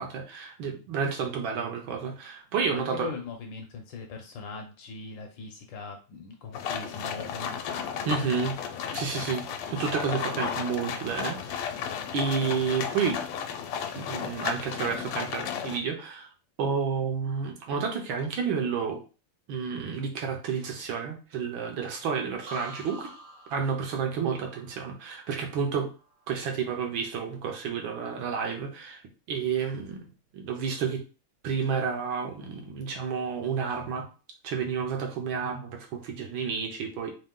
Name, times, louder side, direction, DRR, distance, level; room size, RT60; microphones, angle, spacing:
voice 1, 0.0-3.1 8.1-8.6 8.9-11.8 12.1-13.2 13.9-16.3 16.6-19.0 19.5-23.1 23.5-25.9 26.3-29.0 29.3-30.1 30.3-31.0 31.4-34.0 34.4-37.1, right 6 dB, 70° right, 2 dB, 1.5 m, -30 dB
voice 2, 2.7-7.6, left 4 dB, 70° left, 3 dB, 1.2 m, -40 dB
sound 1, 6.5-15.8, left 7 dB, 90° left, 1.5 m, -34 dB
sound 2, 22.5-26.3 26.6-27.1, right 1 dB, 55° right, 1.0 m, -47 dB
3.7 x 2.7 x 3.6 m, 0.35 s
omnidirectional pair, 2.4 m